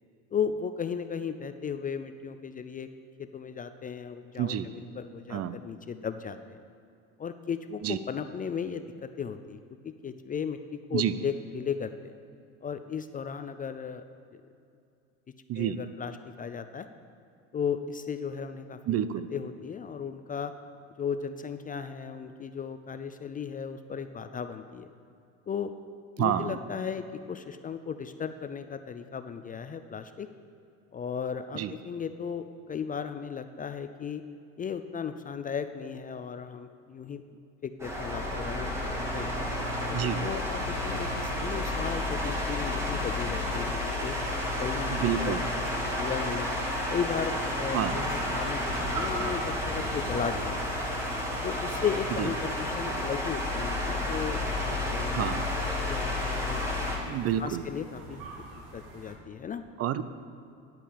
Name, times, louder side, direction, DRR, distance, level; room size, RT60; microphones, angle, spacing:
voice 1, 0.3-2.9 3.2-6.4 7.2-9.6 9.8-12.1 12.6-14.0 14.3-14.4 15.5-16.9 17.5-18.8 19.3-20.5 21.0-24.9 25.5-25.7 26.2-30.3 30.9-34.2 34.6-37.2 37.6-39.3 39.9-44.1 44.5-44.9 45.1-46.5 46.9-51.0 51.4-55.4 55.9-56.6 57.4-58.2 58.7-59.6, left 7 dB, 25° left, 10 dB, 0.4 m, -35 dB
voice 2, 4.4-4.7 5.3-5.5 7.8-8.0 10.9-11.1 15.5-15.8 18.9-19.3 26.2-26.6 31.5-31.7 39.9-40.2 44.9-45.4 47.7-48.0 52.2-52.3 55.2-55.5 57.0-57.7 59.8-60.0, right 10 dB, 40° right, 13 dB, 0.5 m, -29 dB
sound 1, 37.8-57.0, left 1 dB, 5° right, 2.3 m, -31 dB
sound 2, 47.4-59.1, right 2 dB, 60° right, 2.1 m, -43 dB
10.5 x 5.4 x 7.3 m, 2.5 s
hypercardioid pair, 80°, 38 cm